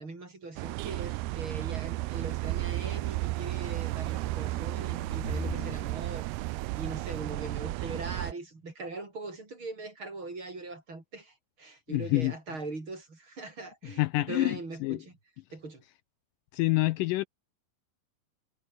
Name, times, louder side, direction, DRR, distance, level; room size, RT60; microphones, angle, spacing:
voice 1, 0.0-6.3 6.8-15.1 15.5-15.8, right 3 dB, 30° right, 6.0 m, -41 dB
sound 1, 0.6-8.3, right 21 dB, 90° right, 2.7 m, -33 dB
sound 2, 1.0-5.8, left 4 dB, 70° left, 8.3 m, -45 dB
voice 2, 11.9-12.3 14.0-15.0 16.5-17.2, left 20 dB, 90° left, 1.9 m, -27 dB
omnidirectional pair, 4.4 m